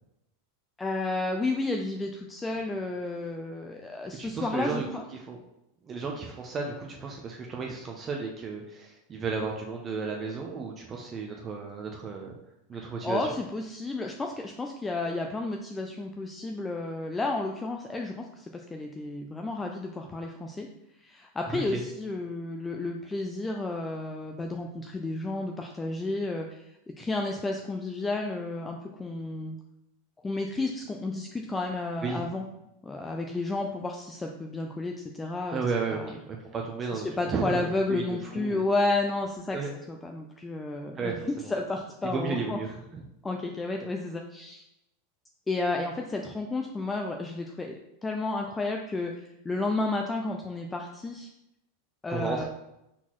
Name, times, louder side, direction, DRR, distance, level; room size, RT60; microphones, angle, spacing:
voice 1, 0.8-5.0 13.0-20.7 21.0-26.6 27.0-29.6 30.2-32.4 32.8-35.6 35.9-36.1 36.9-39.6 39.9-42.6 43.2-44.6 45.5-51.3 52.0-52.5, left 2 dB, 15° left, 2 dB, 0.4 m, -32 dB
voice 2, 4.2-4.9 5.3-5.4 5.8-12.4 12.7-13.3 21.5-21.8 32.0-32.2 35.5-38.6 39.5-39.7 41.0-41.5 42.1-43.0 52.1-52.5, right 4 dB, 30° right, 1 dB, 0.6 m, -33 dB
4.2 x 4.0 x 3.0 m, 0.87 s
hypercardioid pair, 115°, 0 cm